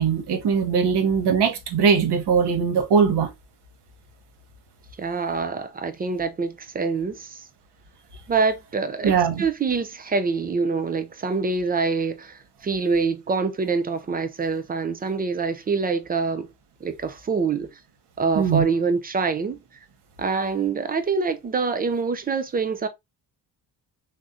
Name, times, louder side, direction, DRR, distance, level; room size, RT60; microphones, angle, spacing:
voice 1, 0.0-3.3 9.0-9.5 18.4-18.6, right 6 dB, 55° right, 0.9 m, -20 dB
voice 2, 5.0-7.5 8.3-16.5 16.8-17.7 18.2-19.6 20.2-22.9, right 4 dB, 20° right, 0.3 m, -25 dB
3.4 x 2.1 x 2.4 m
hypercardioid pair, 55°, 49 cm